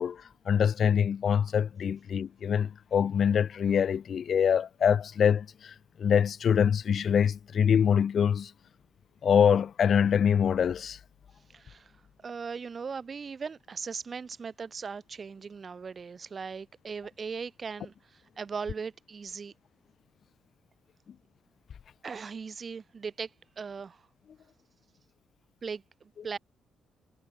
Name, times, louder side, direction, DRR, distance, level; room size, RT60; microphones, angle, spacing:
voice 1, 0.0-8.5 9.2-11.0, left 7 dB, 55° left, 0.7 m, -25 dB
voice 2, 11.5-11.9 12.2-19.5 22.0-23.3 23.6-24.0 25.6-26.4, right 5 dB, 40° right, 1.1 m, -39 dB
cardioid pair, 90°, 0 cm